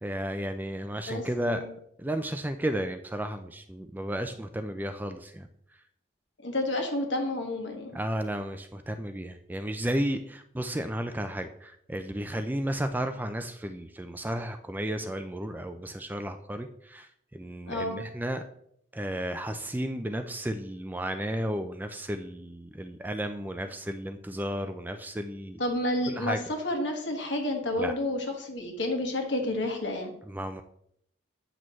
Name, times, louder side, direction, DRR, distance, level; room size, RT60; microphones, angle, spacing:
voice 1, 0.0-1.6 2.0-5.5 7.9-18.4 18.9-25.6 26.1-26.4 27.8-27.9 30.3-30.6, right 1 dB, 10° right, 7 dB, 0.3 m, -33 dB
voice 2, 1.1-1.7 6.4-8.0 17.7-18.0 25.6-30.1, left 1 dB, 60° left, 3 dB, 1.5 m, -30 dB
8.9 x 6.2 x 3.1 m, 0.70 s
head